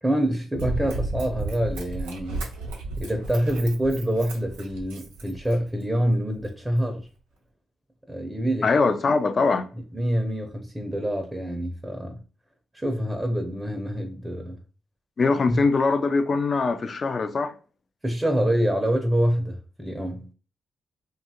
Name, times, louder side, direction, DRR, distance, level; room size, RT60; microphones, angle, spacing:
voice 1, 0.0-2.5 3.0-7.1 8.1-8.7 9.9-12.2 12.7-14.6 15.5-15.6 18.0-20.3, equal, 15° right, 0.6 m, -26 dB
Run, 0.5-5.8 6.4-6.5, right 2 dB, 90° right, 0.5 m, -33 dB
voice 2, 8.6-9.7 15.2-17.5, left 4 dB, 50° left, 0.4 m, -22 dB
2.7 x 2.3 x 2.7 m
hypercardioid pair, 45°, 0 cm